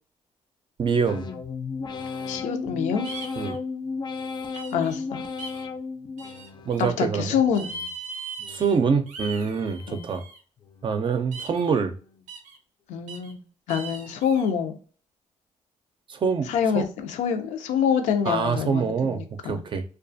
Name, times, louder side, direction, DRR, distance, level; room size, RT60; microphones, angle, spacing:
voice 1, 0.8-1.3 3.4-3.6 6.7-7.4 8.5-10.2 10.8-11.9 16.1-16.8 18.3-19.8, right 5 dB, 40° right, 8 dB, 0.4 m, -25 dB
sound 1, 1.1-6.9 7.3-7.9 8.4-9.0 9.5-10.1 10.6-11.2 11.7-12.2, left 4 dB, 35° left, 0.4 m, -35 dB
voice 2, 2.3-3.1 4.7-5.2 6.8-7.7 9.9-10.1 12.9-13.4 13.7-14.8 16.5-19.6, left 7 dB, 90° left, 6 dB, 0.5 m, -26 dB
sound 2, 3.0-3.6 4.5-5.0 5.4-5.7 6.2-6.9 7.5-8.8 9.1-10.4 11.3-11.7 12.3-12.6 13.1-13.3 13.7-14.5, right 3 dB, 90° right, 0.5 m, -39 dB
2.4 x 2.3 x 2.6 m, 0.39 s
cardioid pair, 80°, 12 cm